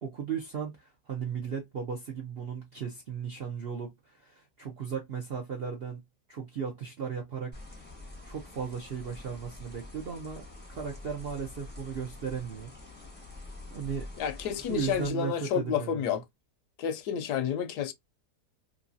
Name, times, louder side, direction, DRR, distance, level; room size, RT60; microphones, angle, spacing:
voice 1, 0.0-6.0 6.3-7.6 8.2-12.7 13.7-14.1 14.7-16.2, right 7 dB, 65° right, 0.6 m, -36 dB
sound 1, 7.5-15.1, left 2 dB, 10° left, 0.7 m, -46 dB
voice 2, 14.2-16.2 16.8-17.9, left 8 dB, 75° left, 1.1 m, -30 dB
3.0 x 2.6 x 2.5 m
omnidirectional pair, 1.8 m